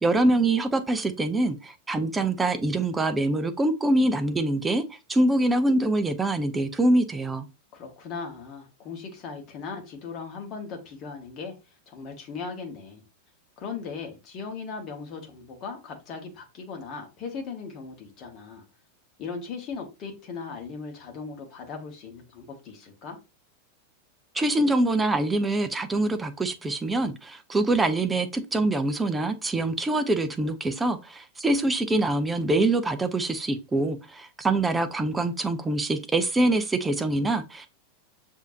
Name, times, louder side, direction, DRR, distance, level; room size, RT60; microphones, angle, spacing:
voice 1, 0.0-7.5 24.3-37.7, right 2 dB, 10° right, 0.6 m, -24 dB
voice 2, 7.7-11.5 11.9-13.0 13.6-18.6 19.2-23.2, left 5 dB, 35° left, 1.1 m, -38 dB
6.4 x 2.7 x 2.6 m
figure-of-eight pair, 90°, 0 cm